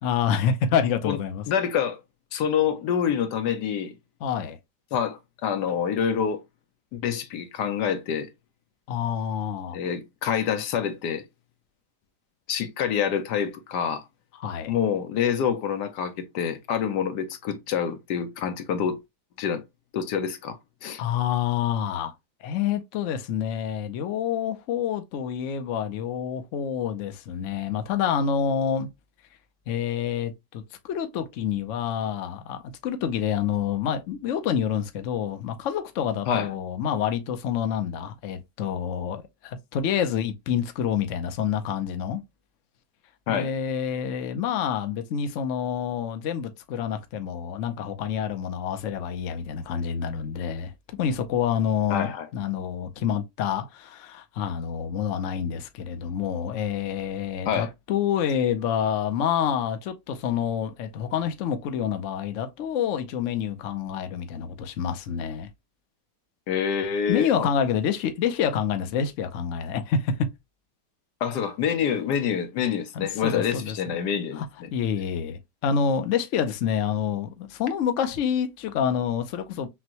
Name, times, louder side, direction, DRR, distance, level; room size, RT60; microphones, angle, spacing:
voice 1, 0.0-1.4 4.2-4.6 8.9-9.8 14.4-14.7 21.0-22.1 22.4-28.9 29.7-42.2 43.3-50.7 51.0-65.5 67.1-70.1 72.9-73.8 74.3-74.5 74.7-79.7, left 8 dB, 60° left, 0.8 m, -27 dB
voice 2, 1.5-2.0 2.3-3.9 4.9-6.4 6.9-8.3 9.7-11.2 12.5-14.0 14.7-19.0 19.4-19.6 19.9-20.6 20.8-21.0 36.3-36.5 43.3-43.5 51.9-52.3 57.5-57.7 66.5-67.5 71.2-74.7, left 8 dB, 75° left, 1.3 m, -27 dB
6.0 x 2.2 x 2.8 m
omnidirectional pair, 1.9 m